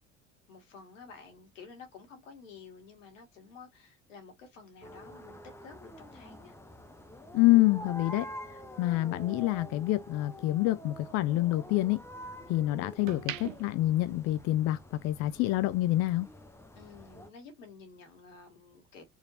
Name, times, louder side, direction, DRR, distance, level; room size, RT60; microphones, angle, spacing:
voice 1, 0.5-6.6 16.7-19.0, left 5 dB, 70° left, 2.0 m, -51 dB
sound 1, 4.8-17.3, equal, 5° left, 0.8 m, -47 dB
voice 2, 7.3-8.3 8.8-12.0 12.5-14.8 15.0-16.3, left 16 dB, 40° left, 0.5 m, -27 dB
sound 2, 8.2-10.6 11.0-12.4 12.8-15.0 15.3-15.5, right 13 dB, 75° right, 0.5 m, -45 dB
4.7 x 3.2 x 2.7 m
figure-of-eight pair, 60°, 39 cm